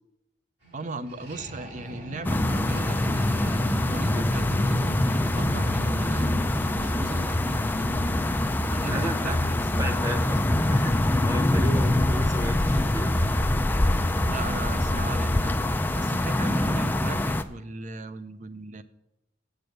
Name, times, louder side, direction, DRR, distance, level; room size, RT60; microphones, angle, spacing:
sound 1, 0.6-7.9, equal, 55° right, 4.4 m, -41 dB
voice 1, 0.7-8.1 8.7-10.2 14.2-15.6 15.9-18.8, right 2 dB, 40° right, 12 dB, 0.6 m, -37 dB
sound 2, 2.2-17.4, left 1 dB, 10° left, 0.3 m, -24 dB
voice 2, 8.9-9.4 9.8-10.4 10.7-11.0 11.2-13.1, equal, 15° right, 6 dB, 1.0 m, -33 dB
7.8 x 6.9 x 7.8 m, 0.90 s
head